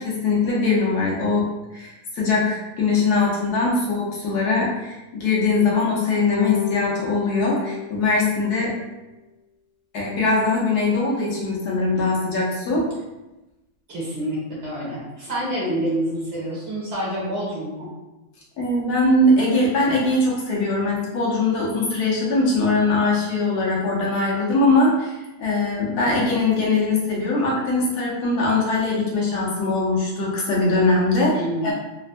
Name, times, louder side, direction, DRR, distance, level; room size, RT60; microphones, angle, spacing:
voice 1, 0.0-1.4 1.7-8.7 9.9-12.8 18.6-31.7, left 2 dB, 90° left, -4 dB, 1.3 m, -21 dB
sound 1, 6.3-8.9, left 11 dB, 65° left, 1.0 m, -31 dB
voice 2, 13.9-17.9 31.3-31.7, right 1 dB, 50° right, -6 dB, 1.1 m, -27 dB
3.3 x 2.1 x 2.5 m, 1.0 s
omnidirectional pair, 1.6 m